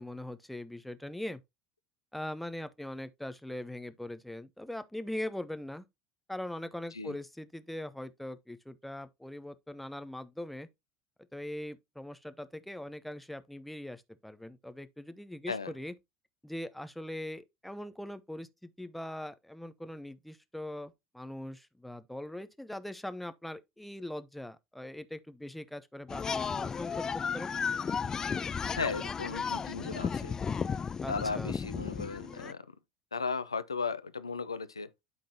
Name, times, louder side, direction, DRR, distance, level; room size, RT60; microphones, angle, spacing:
voice 1, 0.0-1.4 2.1-5.9 6.3-10.7 11.3-15.9 16.4-27.5 31.0-31.5, left 1 dB, 5° left, 0.7 m, -41 dB
sound 1, 26.1-32.5, left 6 dB, 25° left, 0.3 m, -34 dB
voice 2, 28.6-30.3 31.1-32.7 33.1-34.9, left 4 dB, 85° left, 0.5 m, -36 dB
11.5 x 3.9 x 2.8 m
figure-of-eight pair, 70°, 3 cm